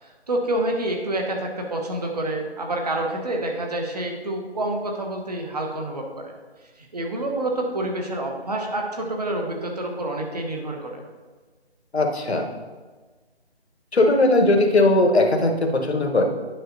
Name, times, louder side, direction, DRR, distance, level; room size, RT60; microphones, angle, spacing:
voice 1, 0.0-6.3 6.8-11.0, right 1 dB, 35° right, 1 dB, 1.1 m, -28 dB
voice 2, 11.9-12.5 13.9-16.2, left 2 dB, 75° left, 3 dB, 1.2 m, -19 dB
10.0 x 5.7 x 2.7 m, 1.3 s
figure-of-eight pair, 165°, 33 cm